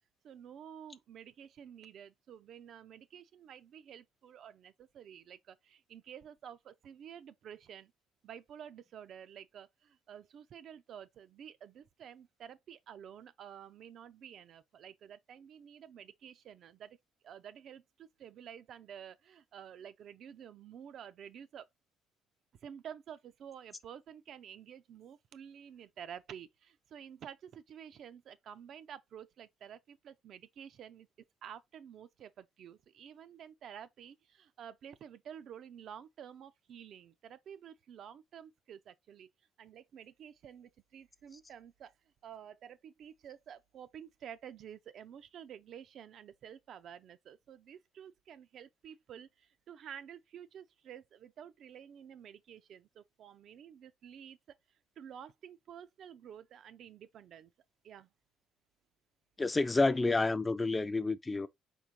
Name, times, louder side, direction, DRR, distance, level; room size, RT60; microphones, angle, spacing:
voice 1, 0.2-7.9 8.2-17.0 17.2-21.7 22.6-31.1 31.4-39.3 39.6-41.9 42.2-54.6 55.0-57.5 57.8-58.1, right 9 dB, 60° right, 0.4 m, -50 dB
voice 2, 59.4-61.5, left 3 dB, 20° left, 0.3 m, -29 dB
4.3 x 3.7 x 2.9 m
cardioid pair, 120°, 0 cm